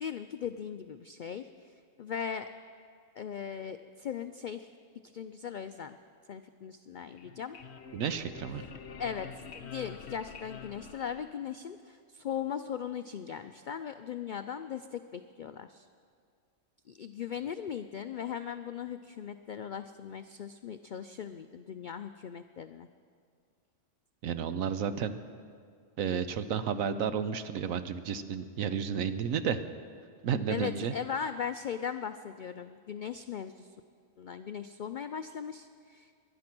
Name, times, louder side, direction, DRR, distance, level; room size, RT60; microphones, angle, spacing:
voice 1, 0.0-1.5 2.0-2.5 3.2-4.7 5.1-6.0 6.3-7.6 9.0-9.3 9.5-15.9 16.9-22.9 30.5-33.7 34.2-36.1, left 8 dB, 90° left, 9 dB, 0.4 m, -38 dB
sound 1, 7.0-11.7, left 6 dB, 60° left, 1.0 m, -47 dB
voice 2, 7.9-8.6 24.2-25.2 26.0-29.6 30.2-30.9, right 7 dB, 85° right, 11 dB, 1.2 m, -32 dB
20.0 x 11.5 x 6.0 m, 2.2 s
omnidirectional pair, 1.4 m